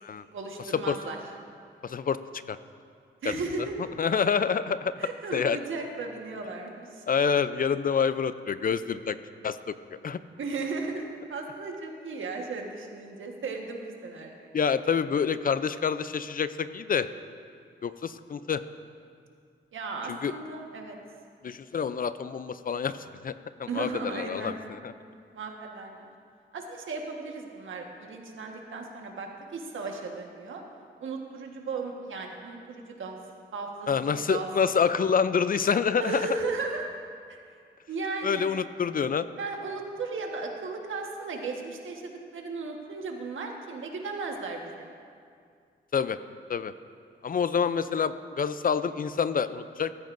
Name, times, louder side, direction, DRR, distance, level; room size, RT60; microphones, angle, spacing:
voice 1, 0.3-1.2 3.2-3.8 5.0-7.0 10.4-14.5 19.7-21.0 23.7-24.5 25.3-26.1 26.5-30.6 31.0-33.2 33.5-33.9 34.3-34.5 36.0-36.9 37.3-37.4 37.9-38.4 39.4-44.9, right 3 dB, 75° right, 2 dB, 1.4 m, -35 dB
voice 2, 1.8-2.2 2.5-2.6 3.3-3.4 4.0-4.9 5.3-5.6 7.1-9.2 9.4-9.7 10.0-10.2 14.5-17.1 17.8-18.6 20.1-20.3 21.4-23.0 23.2-23.3 23.6-24.9 33.9-36.2 38.2-39.3 45.9-46.2 46.5-46.7 47.2-49.9, left 6 dB, 45° left, 13 dB, 0.4 m, -27 dB
14.5 x 13.5 x 2.6 m, 2.3 s
cardioid pair, 65°, 20 cm